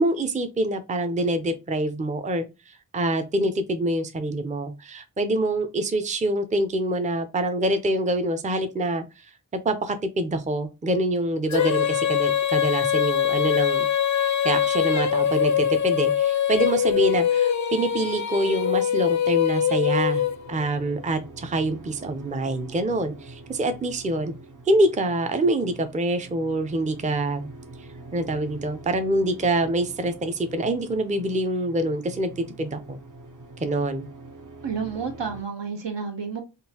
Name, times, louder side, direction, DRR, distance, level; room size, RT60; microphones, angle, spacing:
voice 1, 0.0-9.0 9.5-13.9 14.2-20.2 20.5-24.3 24.7-27.5 28.1-33.0 33.6-34.1, right 1 dB, 20° right, 0.4 m, -25 dB
Female singing, 11.5-20.7, left 9 dB, 45° left, 0.4 m, -23 dB
sound 1, 20.1-35.4, right 3 dB, 45° right, 0.8 m, -45 dB
voice 2, 34.6-36.4, right 6 dB, 75° right, 0.8 m, -30 dB
3.7 x 2.4 x 2.7 m
wide cardioid pair, 50°, 43 cm